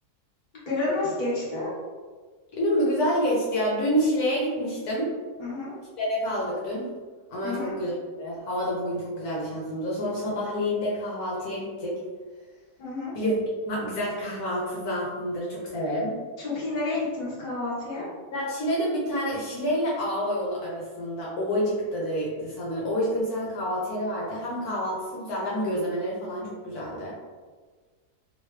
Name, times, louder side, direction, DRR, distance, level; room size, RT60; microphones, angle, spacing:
voice 1, 0.6-1.7 5.4-5.7 7.4-7.8 12.8-13.1 16.4-18.1, left 2 dB, 30° left, -8 dB, 1.3 m, -30 dB
voice 2, 2.5-5.1 6.0-6.9 7.3-12.0 13.1-13.3 13.7-16.1 18.3-27.1, equal, 70° left, -5 dB, 1.3 m, -28 dB
3.0 x 3.0 x 3.1 m, 1.5 s
omnidirectional pair, 1.7 m